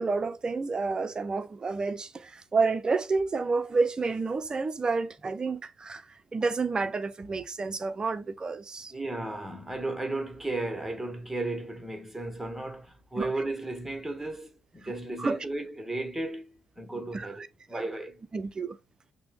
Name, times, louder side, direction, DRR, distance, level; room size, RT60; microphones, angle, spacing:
voice 1, 0.0-6.1 6.3-8.9 13.2-13.3 14.8-14.9 15.2-15.4 17.1-17.3 17.7-17.9 18.3-18.8, right 4 dB, 30° right, 0.6 m, -29 dB
voice 2, 8.9-18.2, right 2 dB, 5° right, 1.3 m, -35 dB
5.8 x 2.2 x 3.7 m
figure-of-eight pair, 45°, 3 cm